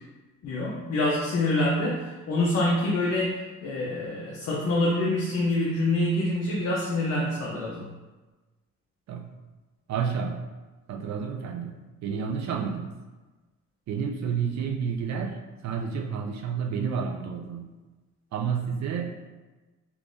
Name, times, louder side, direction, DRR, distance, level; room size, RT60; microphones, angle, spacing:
voice 1, 0.4-7.9, left 1 dB, 55° left, -4 dB, 0.7 m, -26 dB
voice 2, 9.9-10.4 10.9-12.9 13.9-17.8 18.3-19.2, right 6 dB, 65° right, 2 dB, 0.5 m, -30 dB
3.4 x 3.1 x 2.6 m, 1.2 s
cardioid pair, 90°, 30 cm